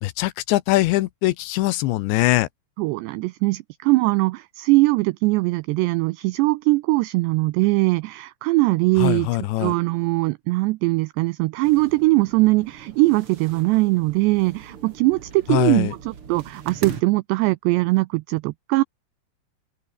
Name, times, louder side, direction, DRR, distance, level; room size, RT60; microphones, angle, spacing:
voice 1, 0.0-2.5 9.0-9.7 15.5-15.9, left 17 dB, 80° left, 2.9 m, -22 dB
voice 2, 2.8-9.3 9.6-18.8, right 22 dB, 90° right, 2.4 m, -21 dB
sound 1, 11.6-17.0, right 7 dB, 45° right, 2.0 m, -40 dB
open air
omnidirectional pair, 5.6 m